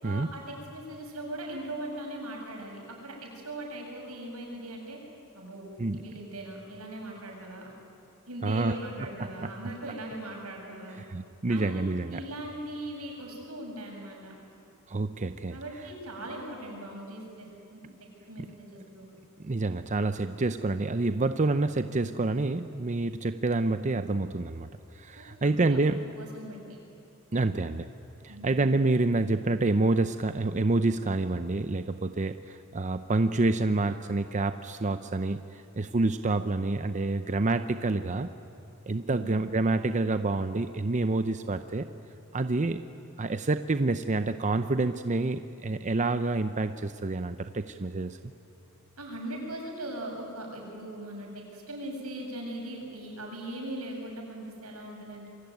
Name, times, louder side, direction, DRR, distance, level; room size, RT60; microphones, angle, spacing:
voice 1, 0.0-5.0 5.3-7.7 8.3-11.0 11.5-11.8 12.1-14.3 15.5-17.8 18.3-19.1 25.2-26.6 28.3-28.7 39.1-39.5 49.0-55.3, right 1 dB, 85° right, 0 dB, 7.6 m, -40 dB
voice 2, 8.4-8.8 9.2-9.5 11.0-12.2 14.9-15.6 19.4-24.7 24.9-26.0 27.3-27.9 28.2-38.3 38.9-41.9 42.3-42.9 43.2-48.2, right 2 dB, 35° right, 10 dB, 0.6 m, -28 dB
27.0 x 23.0 x 9.3 m, 2.6 s
head